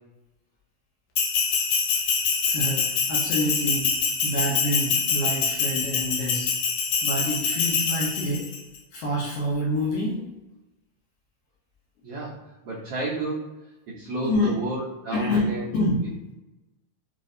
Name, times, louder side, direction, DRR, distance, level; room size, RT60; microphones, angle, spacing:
Bell, 1.2-8.6, left 5 dB, 90° left, 1.5 m, -25 dB
voice 1, 2.5-3.9 4.2-6.5 7.0-8.5 8.9-10.3 14.0-14.6 15.1-16.1, left 1 dB, 75° left, -4 dB, 1.9 m, -27 dB
voice 2, 12.0-12.4 12.6-13.4 14.0-15.8, right 2 dB, 80° right, -6 dB, 1.3 m, -31 dB
6.2 x 2.5 x 2.6 m, 1.0 s
omnidirectional pair, 3.9 m